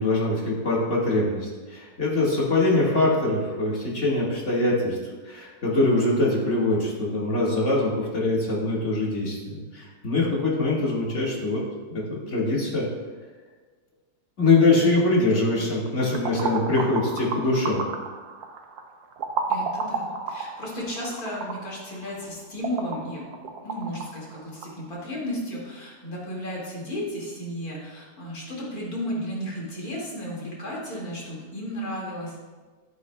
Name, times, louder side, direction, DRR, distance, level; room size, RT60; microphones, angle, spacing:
voice 1, 0.0-5.0 5.2-11.6 11.9-12.9 14.4-17.8, left 2 dB, 45° left, -5 dB, 2.1 m, -23 dB
sound 1, 15.9-24.8, right 4 dB, 70° right, 1.2 m, -33 dB
voice 2, 19.5-23.3 23.6-32.4, equal, 60° left, -5 dB, 2.7 m, -34 dB
10.5 x 8.4 x 2.3 m, 1.4 s
omnidirectional pair, 1.8 m